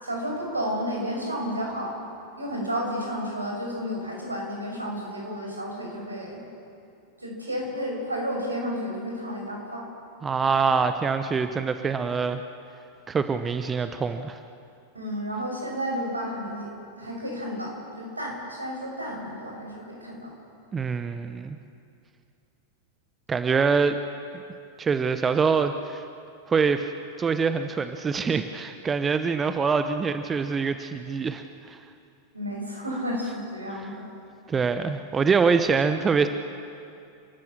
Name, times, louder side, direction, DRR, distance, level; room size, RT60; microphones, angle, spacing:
voice 1, 0.0-2.0 2.4-6.4 7.2-9.8 14.9-16.7 17.0-20.3 32.3-33.9, equal, 80° right, -1 dB, 6.2 m, -31 dB
voice 2, 10.2-12.4 13.1-14.4 20.7-21.6 23.3-24.0 24.8-26.0 26.5-26.9 27.2-31.8 33.7-33.9 34.5-36.3, right 5 dB, 20° right, 9 dB, 0.9 m, -24 dB
29.5 x 13.5 x 7.4 m, 2.6 s
figure-of-eight pair, 90°, 0 cm